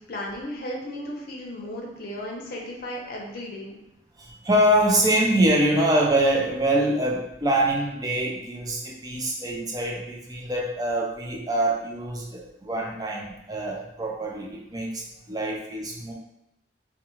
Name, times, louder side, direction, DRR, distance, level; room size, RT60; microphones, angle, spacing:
voice 1, 0.0-3.7, left 1 dB, 55° left, -1 dB, 0.6 m, -35 dB
voice 2, 4.2-16.1, right 1 dB, 20° right, -1 dB, 0.4 m, -24 dB
2.4 x 2.2 x 3.0 m, 0.86 s
head